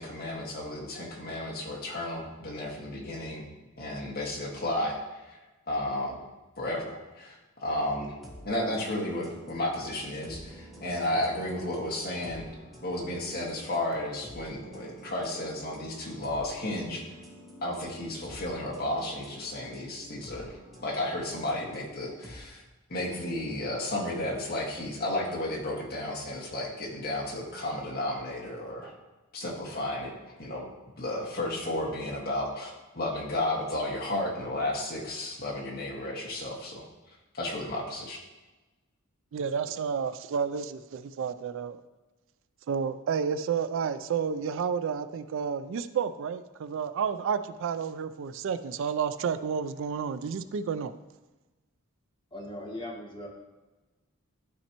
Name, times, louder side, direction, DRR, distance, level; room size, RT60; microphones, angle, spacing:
voice 1, 0.0-3.4 3.8-5.4 5.7-6.2 6.6-8.1 8.4-12.4 12.8-17.0 17.6-20.5 20.8-22.6 22.9-28.9 29.3-30.1 30.4-30.6 31.0-36.8 37.3-38.2, left 1 dB, 45° left, -2 dB, 1.6 m, -33 dB
sound 1, 7.9-22.4, right 1 dB, ahead, 1.3 m, -49 dB
voice 2, 39.3-41.8 42.7-50.9, right 6 dB, 65° right, 13 dB, 0.4 m, -31 dB
voice 3, 52.3-53.3, left 1 dB, 25° left, -2 dB, 1.4 m, -39 dB
12.0 x 4.3 x 3.0 m, 1.1 s
head